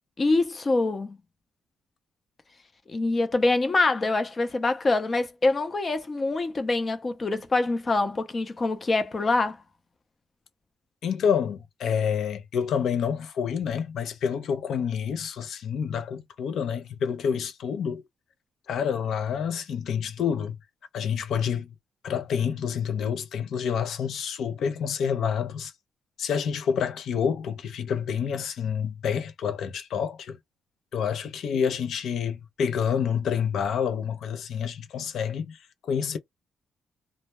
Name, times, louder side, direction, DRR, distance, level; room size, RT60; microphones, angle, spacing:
voice 1, 0.2-1.2 2.9-9.6, left 3 dB, 35° left, 0.6 m, -25 dB
voice 2, 11.0-18.0 18.7-20.6 20.9-21.7 22.0-25.7 26.2-30.4 30.9-35.6 35.8-36.2, left 7 dB, 75° left, 0.5 m, -28 dB
2.2 x 2.0 x 2.9 m
cardioid pair, 95°, 0 cm